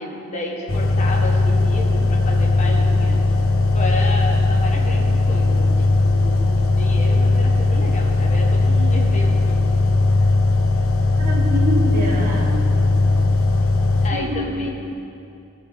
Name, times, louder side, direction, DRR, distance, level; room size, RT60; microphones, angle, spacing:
voice 1, 0.0-3.2 3.7-9.7 14.0-14.7, left 1 dB, 35° left, -1 dB, 1.3 m, -31 dB
sound 1, 0.7-14.1, left 2 dB, 70° left, 0.9 m, -18 dB
voice 2, 11.1-12.6 14.1-14.7, equal, 40° right, -3 dB, 1.9 m, -26 dB
19.5 x 7.0 x 3.6 m, 2.6 s
head